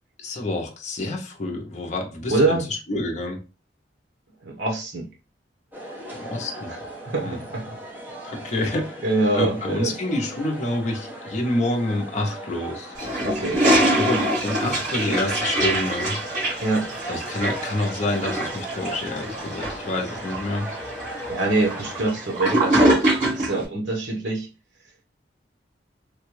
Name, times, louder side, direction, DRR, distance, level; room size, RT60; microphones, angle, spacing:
voice 1, 0.2-2.6 2.9-3.4 6.1-6.7 7.2-7.4 8.2-9.0 9.3-12.9 13.8-16.2 17.1-20.7, left 2 dB, 40° left, 0.6 m, -28 dB
voice 2, 2.3-2.7 4.4-5.1 6.7-6.8 7.0-7.7 8.4-8.5 9.0-9.9 13.2-13.7 16.6-16.9 21.3-23.0 23.3-24.5, right 2 dB, 75° right, 0.9 m, -24 dB
sound 1, 5.7-22.1, right 1 dB, 10° right, 0.9 m, -38 dB
Toilet flush, 13.0-23.6, right 1 dB, 45° right, 1.7 m, -24 dB
3.3 x 2.2 x 3.0 m
head